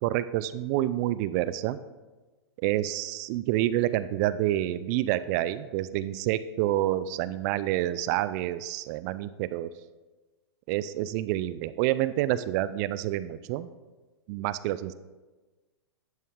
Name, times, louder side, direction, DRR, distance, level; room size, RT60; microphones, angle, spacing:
voice 1, 0.0-1.8 2.6-9.7 10.7-13.7 14.3-14.9, right 14 dB, 40° right, 14 dB, 0.4 m, -28 dB
11.0 x 5.5 x 3.5 m, 1.2 s
hypercardioid pair, 120°, 14 cm